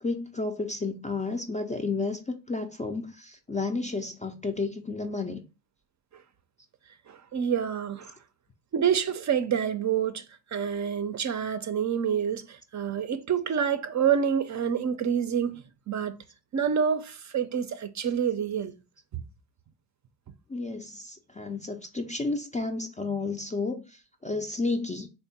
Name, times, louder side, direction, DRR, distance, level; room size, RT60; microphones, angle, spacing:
voice 1, 0.0-5.4 20.5-25.1, left 3 dB, 20° left, 0.3 m, -32 dB
voice 2, 7.1-8.1 8.7-16.2 16.5-18.7 19.1-19.2, right 8 dB, 45° right, 0.4 m, -27 dB
3.5 x 2.1 x 3.9 m
cardioid pair, 85°, 43 cm